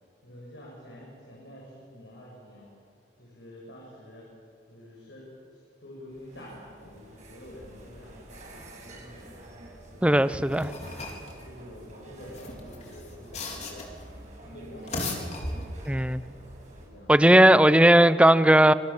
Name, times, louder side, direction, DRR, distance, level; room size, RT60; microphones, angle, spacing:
voice 1, 0.2-2.7 3.2-4.3 4.7-9.4 9.9-10.7 11.2-13.9 14.4-15.2 16.7-17.6, left 1 dB, 80° left, 7.3 m, -47 dB
sound 1, 6.1-16.9, right 1 dB, 40° right, 6.2 m, -48 dB
voice 2, 10.0-10.7 15.9-16.2 17.1-18.7, right 1 dB, 5° right, 0.6 m, -17 dB
sound 2, 10.3-11.3 12.2-14.0 14.7-16.0, left 2 dB, 40° left, 3.9 m, -36 dB
27.5 x 25.5 x 7.3 m
head